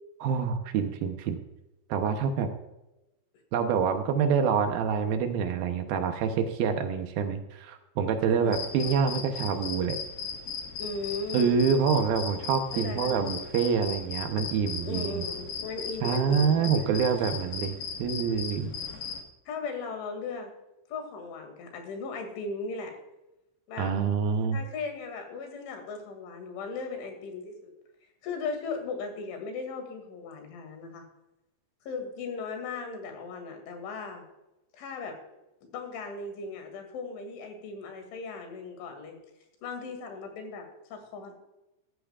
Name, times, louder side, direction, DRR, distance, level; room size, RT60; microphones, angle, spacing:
voice 1, 0.2-1.4 1.9-2.5 3.5-10.0 11.3-15.2 16.0-18.7 23.8-24.6, right 6 dB, 80° right, 6 dB, 2.1 m, -26 dB
sound 1, 8.5-19.2, left 6 dB, 60° left, 3.0 m, -37 dB
voice 2, 10.8-11.6 12.7-13.3 14.9-16.9 19.5-20.5 20.9-23.0 23.7-23.9 24.5-27.7 28.2-31.0 31.9-34.2 34.7-35.2 35.7-39.2 39.6-41.3, left 4 dB, 85° left, 5 dB, 4.7 m, -37 dB
14.5 x 13.5 x 2.4 m, 0.96 s
omnidirectional pair, 5.3 m